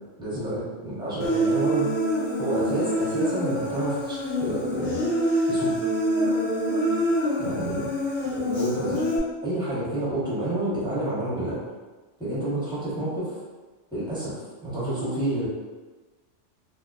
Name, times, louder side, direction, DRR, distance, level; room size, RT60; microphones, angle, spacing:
voice 1, 0.2-1.9 2.4-5.0 5.5-5.8 7.4-7.9 8.2-9.0 9.4-11.6 12.2-13.3 13.9-15.5, right 1 dB, 5° right, -10 dB, 0.9 m, -29 dB
Human voice, 1.2-9.2, equal, 85° left, 0.9 m, -25 dB
2.5 x 2.2 x 2.3 m, 1.3 s
omnidirectional pair, 1.2 m